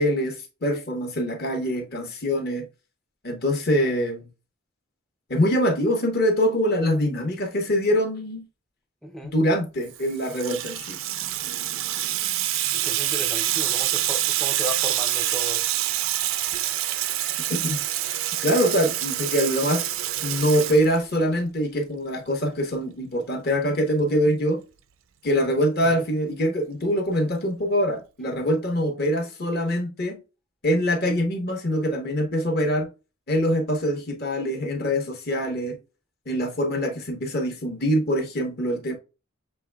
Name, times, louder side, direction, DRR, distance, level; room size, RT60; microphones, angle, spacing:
voice 1, 0.0-2.7 3.2-4.3 5.3-8.4 9.2-11.0 17.5-17.8 18.4-19.9 20.2-24.6 25.2-30.2 30.6-32.9 33.3-35.8 36.3-38.9, equal, 45° left, 1.1 m, -24 dB
voice 2, 9.0-9.3 12.7-15.6 25.8-26.1, right 1 dB, ahead, 0.4 m, -35 dB
Water tap faucet / Sink (filling or washing), 9.9-21.4, right 13 dB, 65° right, 0.4 m, -26 dB
6.8 x 3.2 x 2.3 m
head